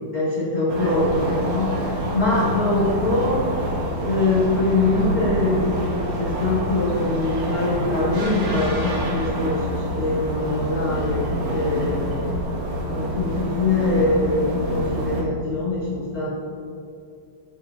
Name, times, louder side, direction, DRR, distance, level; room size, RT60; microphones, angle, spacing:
voice 1, 0.0-3.5 4.0-12.2 12.8-16.4, left 2 dB, 85° left, -8 dB, 0.8 m, -23 dB
sound 1, 0.7-15.2, equal, 60° right, 1.6 m, -27 dB
15.0 x 8.7 x 2.7 m, 2.5 s
omnidirectional pair, 5.6 m